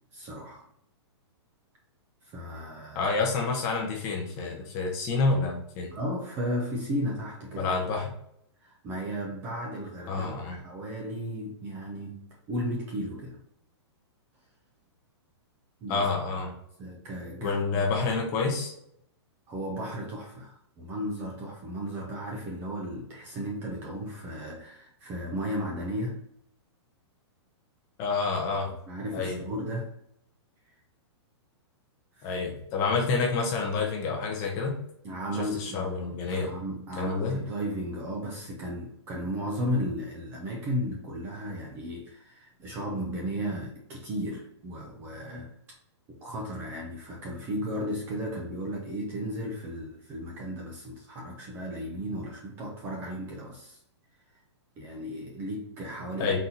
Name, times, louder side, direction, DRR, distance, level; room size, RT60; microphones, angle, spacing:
voice 1, 0.1-0.6 2.2-3.1 5.9-7.7 8.6-12.2 12.5-13.4 15.8-16.1 16.8-17.8 19.5-26.2 28.9-29.9 32.2-32.4 35.0-45.5 46.1-53.8 54.8-56.3, equal, 15° right, -1 dB, 0.5 m, -35 dB
voice 2, 2.9-5.9 7.6-8.1 10.1-10.6 15.9-16.5 17.4-18.7 28.0-28.7 29.1-29.4 32.2-34.7 35.4-36.5 37.0-37.4 56.2-56.4, left 4 dB, 20° left, 1 dB, 0.7 m, -28 dB
4.0 x 2.8 x 3.8 m, 0.74 s
hypercardioid pair, 175°, 15 cm